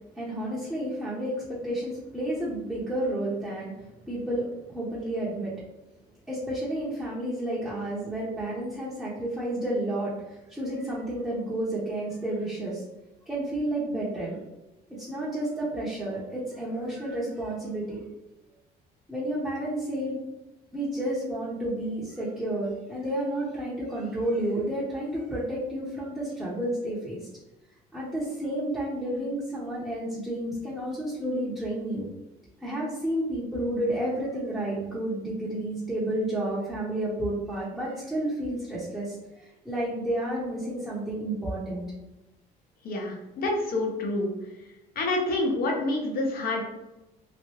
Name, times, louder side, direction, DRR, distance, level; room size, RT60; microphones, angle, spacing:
voice 1, 0.2-3.7 4.1-5.5 6.3-10.2 10.5-12.8 13.3-14.4 15.1-18.0 19.1-20.2 20.7-27.2 27.9-32.1 32.6-39.1 39.6-41.8, right 1 dB, 5° right, -9 dB, 0.9 m, -31 dB
voice 2, 42.8-44.3 45.0-46.6, left 2 dB, 60° left, 1 dB, 0.9 m, -27 dB
3.0 x 2.5 x 3.1 m, 0.97 s
cardioid pair, 110°, 17 cm